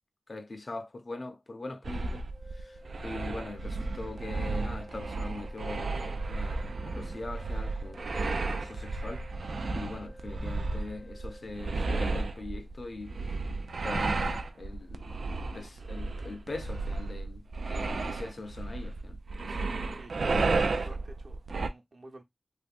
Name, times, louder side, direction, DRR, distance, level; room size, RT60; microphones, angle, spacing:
voice 1, 0.3-2.3 2.5-13.4 13.8-15.1 15.5-19.7 20.3-20.7, left 2 dB, 55° left, 0.5 m, -42 dB
sound 1, 1.8-21.7, right 3 dB, 90° right, 0.3 m, -33 dB
sound 2, 2.3-12.0, equal, 10° right, 0.5 m, -53 dB
voice 2, 19.9-20.4 20.7-22.2, right 2 dB, 60° right, 0.8 m, -50 dB
3.3 x 2.6 x 2.4 m
wide cardioid pair, 85°, 0 cm